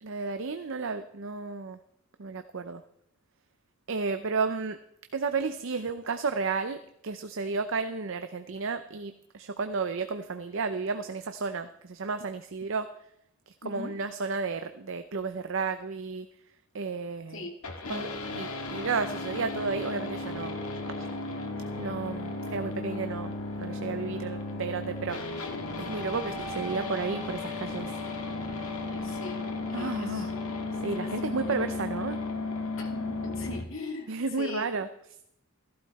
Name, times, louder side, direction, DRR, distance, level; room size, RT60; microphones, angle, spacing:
voice 1, 0.0-1.8 2.2-2.8 3.9-4.8 5.1-12.9 13.5-16.3 16.7-17.5 17.9-20.6 21.0-21.1 21.8-25.2 25.8-27.9 29.7-30.3 30.8-32.2 34.1-34.9, right 4 dB, 60° right, 9 dB, 0.6 m, -32 dB
voice 2, 13.6-13.9 17.3-17.6 28.9-29.5 29.8-30.3 31.0-31.5 32.8-34.8, left 2 dB, 60° left, 3 dB, 2.4 m, -40 dB
sound 1, 17.6-33.6, left 3 dB, 75° left, 2.0 m, -35 dB
14.5 x 12.0 x 4.2 m, 0.76 s
head